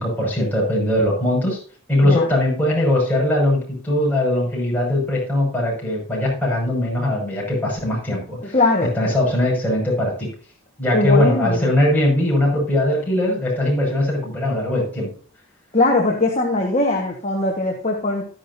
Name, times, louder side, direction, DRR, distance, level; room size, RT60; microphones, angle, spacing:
voice 1, 0.0-1.6 1.9-8.6 8.8-10.3 10.8-15.1, left 1 dB, 10° left, -4 dB, 6.4 m, -20 dB
voice 2, 8.5-8.9 10.9-11.7 15.7-18.2, left 2 dB, 30° left, -1 dB, 1.5 m, -20 dB
12.5 x 10.5 x 2.7 m, 0.43 s
head